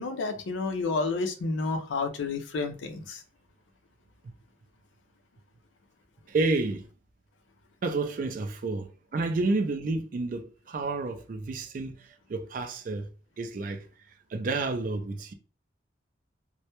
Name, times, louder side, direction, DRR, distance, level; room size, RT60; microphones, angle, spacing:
voice 1, 0.0-3.2, left 3 dB, 80° left, 0.4 m, -30 dB
voice 2, 6.3-6.9 7.8-12.0 12.3-13.1 13.4-13.9 14.3-15.3, right 3 dB, 45° right, 0.3 m, -30 dB
2.1 x 2.0 x 2.8 m
head